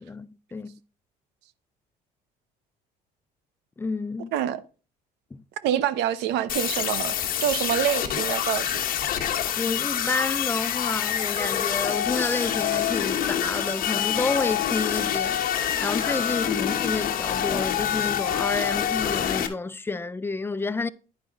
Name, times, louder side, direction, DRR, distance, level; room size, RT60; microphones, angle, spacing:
voice 1, 0.0-0.8 3.8-4.3 5.3-5.4 9.6-20.9, left 3 dB, 15° left, 0.4 m, -30 dB
voice 2, 5.6-8.8, right 11 dB, 85° right, 0.7 m, -26 dB
sound 1, 6.5-19.5, left 10 dB, 55° left, 1.1 m, -26 dB
10.5 x 4.8 x 3.9 m
cardioid pair, 110°, 17 cm